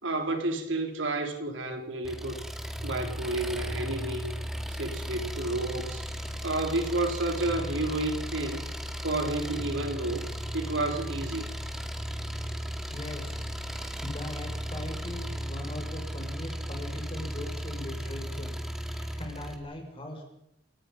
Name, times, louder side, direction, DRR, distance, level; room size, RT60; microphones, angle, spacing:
voice 1, 0.0-2.4 2.8-4.3 4.7-6.0 6.4-8.6 9.0-10.3 10.5-11.5, right 2 dB, 85° right, 4.0 m, -31 dB
Engine, 2.0-19.6, equal, ahead, 2.2 m, -36 dB
voice 2, 12.9-20.2, left 1 dB, 30° left, 6.2 m, -40 dB
28.5 x 18.5 x 5.5 m
head